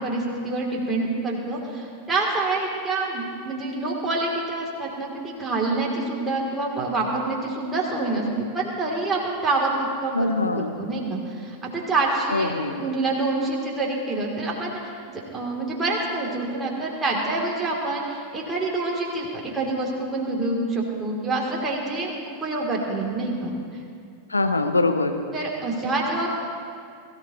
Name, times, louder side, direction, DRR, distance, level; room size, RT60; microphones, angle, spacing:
voice 1, 0.0-8.2 8.5-12.5 12.8-14.9 15.3-23.5 25.3-26.3, right 2 dB, 15° right, -3 dB, 3.3 m, -27 dB
voice 2, 10.1-10.7 12.3-12.8 24.3-25.2, left 2 dB, 80° left, 7 dB, 1.0 m, -23 dB
22.5 x 14.5 x 3.2 m, 2.3 s
figure-of-eight pair, 90°, 0 cm